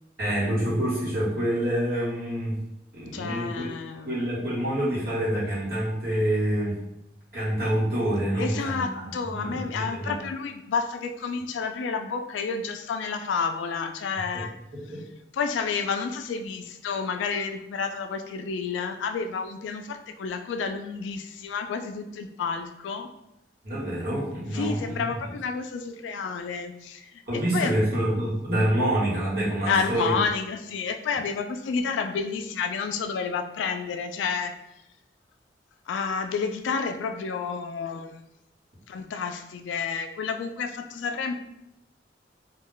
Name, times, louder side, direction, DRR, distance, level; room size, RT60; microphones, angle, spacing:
voice 1, 0.2-2.6 2.9-3.7 4.0-6.8 7.3-9.0 9.3-10.2 14.3-14.4 14.7-15.0 23.6-25.0 27.3-30.1, right 1 dB, 55° right, -8 dB, 1.2 m, -27 dB
voice 2, 3.1-4.2 8.4-14.5 15.3-23.1 24.5-27.7 29.7-34.5 35.9-38.2 38.9-41.3, left 5 dB, 90° left, 7 dB, 0.3 m, -30 dB
2.3 x 2.1 x 3.7 m, 0.85 s
head